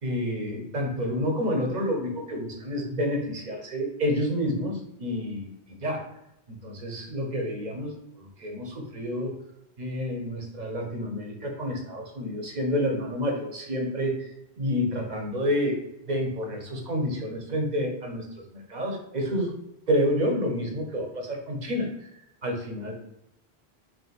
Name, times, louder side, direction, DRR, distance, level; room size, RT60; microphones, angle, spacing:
voice 1, 0.0-5.5 5.8-6.1 6.5-9.3 9.8-15.8 16.1-18.2 18.5-19.5 19.9-22.1 22.4-22.9, equal, 45° right, 1 dB, 0.9 m, -29 dB
3.7 x 2.5 x 4.1 m, 0.83 s
omnidirectional pair, 1.1 m